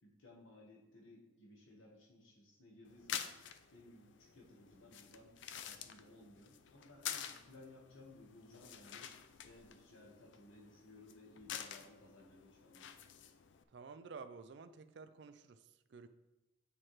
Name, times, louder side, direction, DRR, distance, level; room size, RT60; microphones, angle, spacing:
voice 1, 0.0-3.4 3.7-5.3 5.6-9.1 9.4-12.9, left 2 dB, 90° left, -1 dB, 1.3 m, -59 dB
sound 1, 2.9-13.6, left 9 dB, 65° left, 0.4 m, -49 dB
voice 2, 13.7-16.1, right 5 dB, 60° right, 11 dB, 0.4 m, -52 dB
8.3 x 4.4 x 3.2 m, 1.0 s
head